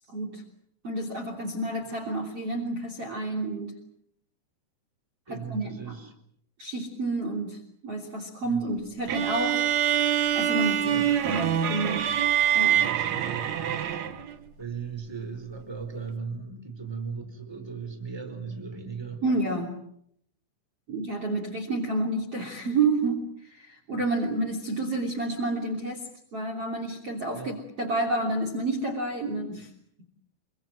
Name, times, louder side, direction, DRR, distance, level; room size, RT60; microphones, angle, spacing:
voice 1, 0.1-0.4 0.8-3.7 5.3-6.0 6.6-9.6 9.9-10.1 10.3-12.1 12.5-12.8 19.2-19.8 20.9-26.1 26.3-29.7, right 2 dB, 35° right, 4 dB, 3.6 m, -30 dB
voice 2, 5.3-6.1 8.4-8.7 10.8-11.1 12.7-14.0 14.6-19.2 27.3-27.5, right 5 dB, 5° right, 6 dB, 4.1 m, -37 dB
sound 1, 9.1-14.4, right 10 dB, 85° right, 1.5 m, -25 dB
27.5 x 24.5 x 7.7 m, 0.70 s
omnidirectional pair, 5.4 m